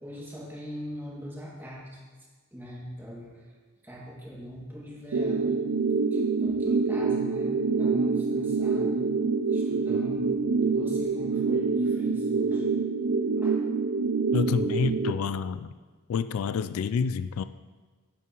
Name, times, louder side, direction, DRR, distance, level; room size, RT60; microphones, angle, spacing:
voice 1, 0.0-2.0 2.5-3.5 3.8-5.6 6.1-9.1 9.5-12.7 13.4-13.6, equal, 10° right, -5 dB, 2.0 m, -42 dB
sound 1, 5.1-15.1, right 4 dB, 90° right, 0.5 m, -26 dB
voice 2, 14.3-15.7 16.1-17.4, left 6 dB, 75° left, 13 dB, 0.3 m, -28 dB
11.0 x 9.3 x 3.0 m, 1.4 s
head